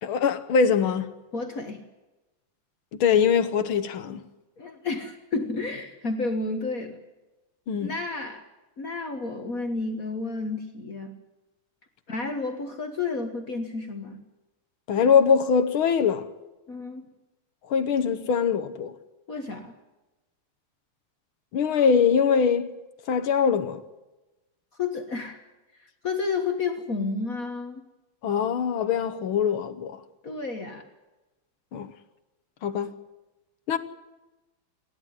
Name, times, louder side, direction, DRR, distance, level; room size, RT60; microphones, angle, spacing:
voice 1, 0.0-1.1 2.9-4.2 7.7-7.9 14.9-16.3 17.7-18.9 21.5-22.8 23.1-23.8 28.2-30.0 31.7-31.9 32.6-32.9 33.7-33.8, left 6 dB, 75° left, 2.0 m, -22 dB
voice 2, 1.3-1.8 4.6-7.0 7.8-8.4 8.8-11.2 12.1-14.2 16.7-17.0 19.3-19.7 24.8-25.4 25.8-27.8 30.2-30.8, left 3 dB, 45° left, 1.8 m, -31 dB
29.5 x 11.5 x 9.5 m
omnidirectional pair, 2.3 m